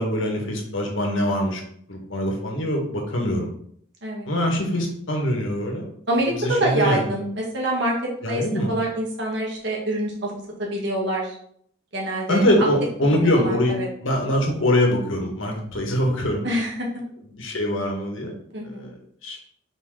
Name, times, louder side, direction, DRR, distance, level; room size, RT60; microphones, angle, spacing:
voice 1, 0.0-1.6 1.9-3.5 4.3-5.9 6.4-7.1 8.2-8.7 12.3-13.7 14.0-16.5 17.3-18.3 18.6-18.9 19.2-19.4, left 1 dB, 70° left, 1 dB, 1.7 m, -23 dB
voice 2, 6.1-7.9 8.2-10.3 10.6-11.4 11.9-12.5 13.0-13.9 16.4-16.7 18.5-18.9, right 1 dB, 55° right, -3 dB, 1.8 m, -26 dB
5.0 x 4.3 x 5.0 m, 0.66 s
head